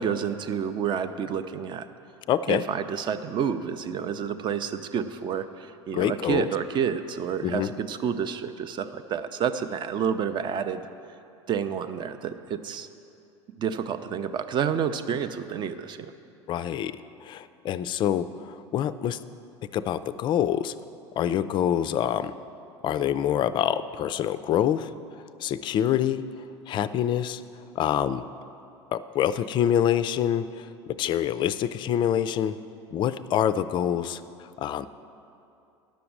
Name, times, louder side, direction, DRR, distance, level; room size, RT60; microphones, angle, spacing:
voice 1, 0.0-1.9 2.5-10.8 11.5-12.9 13.5-16.1, right 7 dB, 30° right, 10 dB, 0.5 m, -29 dB
voice 2, 2.3-2.6 5.9-6.5 7.4-7.7 16.5-19.2 19.7-20.7 21.2-22.3 22.8-24.9 25.4-26.2 26.7-27.4 27.8-28.2 28.9-32.6 32.9-34.9, left 10 dB, 30° left, 14 dB, 0.4 m, -26 dB
10.5 x 6.8 x 7.3 m, 2.7 s
figure-of-eight pair, 70°, 15 cm